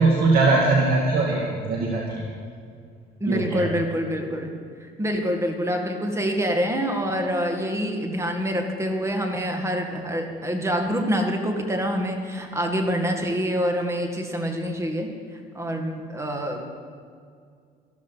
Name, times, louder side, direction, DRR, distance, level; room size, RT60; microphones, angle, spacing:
voice 1, 0.0-2.2 3.2-3.7, right 3 dB, 60° right, -2 dB, 2.1 m, -21 dB
voice 2, 3.2-16.7, equal, 15° right, 4 dB, 1.9 m, -26 dB
13.5 x 13.0 x 5.8 m, 2.2 s
cardioid pair, 110°, 17 cm